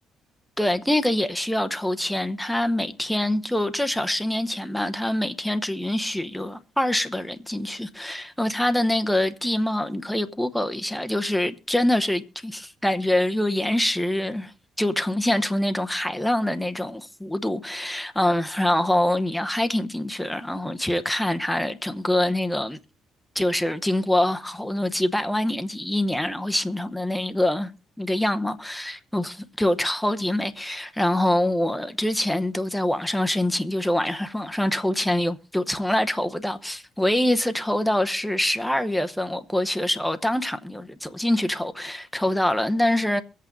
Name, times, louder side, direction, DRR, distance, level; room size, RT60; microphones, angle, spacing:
voice 1, 0.6-22.8 23.3-27.7 28.0-43.2, left 1 dB, 5° left, 0.9 m, -25 dB
22.5 x 8.4 x 3.9 m
cardioid pair, 155°, 0 cm